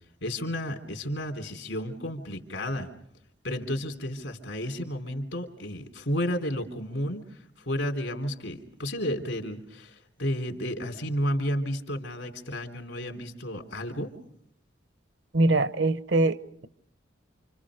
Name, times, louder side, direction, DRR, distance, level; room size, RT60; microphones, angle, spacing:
voice 1, 0.2-2.9 3.4-14.1, equal, 75° left, 3.3 m, -32 dB
voice 2, 15.3-16.7, right 2 dB, 70° right, 0.9 m, -23 dB
29.0 x 27.0 x 5.0 m
head